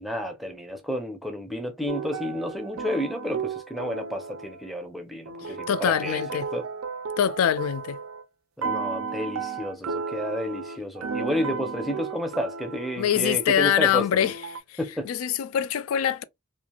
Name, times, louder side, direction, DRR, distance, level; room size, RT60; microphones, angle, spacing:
voice 1, 0.0-6.2 6.5-6.7 8.6-14.3 14.8-15.1, equal, ahead, 0.5 m, -31 dB
sound 1, 1.9-4.8 5.3-8.2 8.6-13.5 14.2-14.6, right 5 dB, 85° right, 0.4 m, -34 dB
voice 2, 5.4-6.5 7.2-8.0 13.0-14.3 14.7-14.8 15.1-16.2, left 9 dB, 90° left, 0.3 m, -24 dB
3.1 x 2.4 x 2.3 m
head